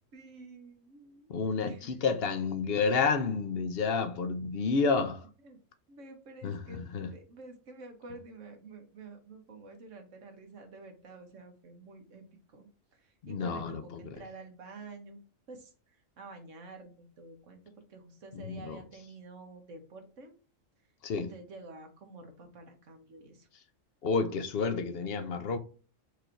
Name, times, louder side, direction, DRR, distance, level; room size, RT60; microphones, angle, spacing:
voice 1, 0.1-1.3 1.6-2.1 5.4-5.6 5.9-15.2 15.5-20.3 21.1-23.5, right 3 dB, 75° right, 1.4 m, -49 dB
voice 2, 1.3-5.3 6.4-7.1 13.2-14.0 18.5-18.8 21.0-21.3 24.0-25.6, left 4 dB, 60° left, 0.7 m, -30 dB
4.7 x 2.6 x 4.4 m
omnidirectional pair, 1.3 m